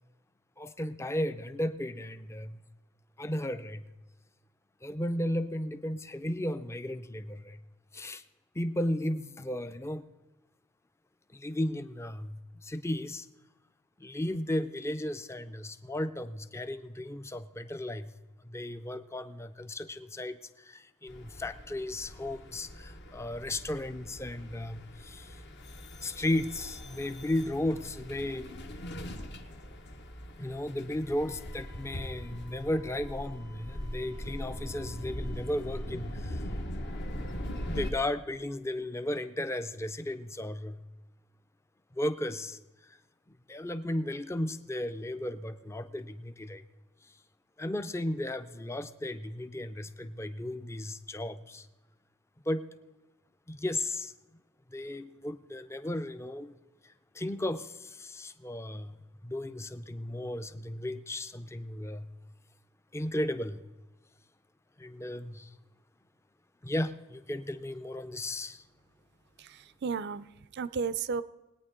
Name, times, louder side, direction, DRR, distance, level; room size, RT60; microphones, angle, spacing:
voice 1, 0.6-2.7 3.2-3.9 4.8-7.6 7.9-8.2 8.5-10.0 11.3-13.3 14.0-18.1 18.4-25.4 26.0-28.5 30.4-36.4 37.7-40.8 41.9-42.6 43.3-46.6 47.6-51.7 52.5-52.7 53.5-54.1 54.7-56.5 57.1-62.1 62.9-63.6 64.8-65.5 66.6-68.6, left 1 dB, 15° left, 0.5 m, -35 dB
sound 1, 21.1-37.9, equal, 55° left, 1.0 m, -41 dB
voice 2, 69.4-71.2, right 5 dB, 55° right, 0.5 m, -34 dB
21.0 x 9.2 x 3.7 m
head